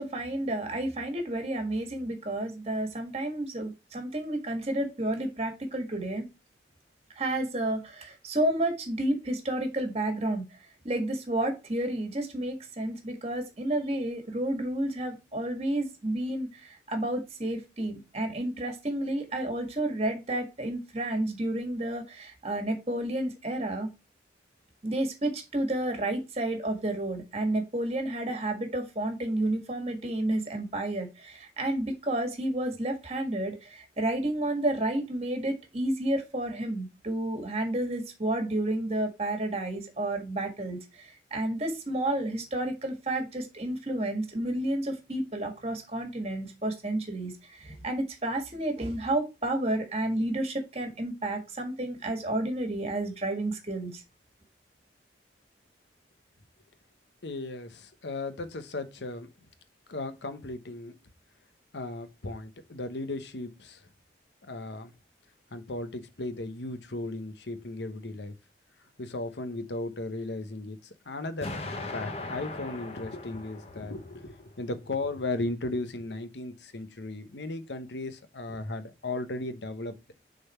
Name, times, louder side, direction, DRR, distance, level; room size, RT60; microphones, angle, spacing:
voice 1, 0.0-6.3 7.1-10.4 10.8-23.9 24.8-54.0, right 1 dB, 35° right, 1.6 m, -31 dB
voice 2, 57.2-59.3 59.9-60.9 61.7-63.8 64.5-64.9 65.5-68.3 69.0-70.8 71.1-71.5 71.9-80.0, left 2 dB, 75° left, 0.9 m, -36 dB
Explosion, 71.4-74.4, left 2 dB, 35° left, 1.0 m, -39 dB
6.6 x 4.0 x 4.3 m
head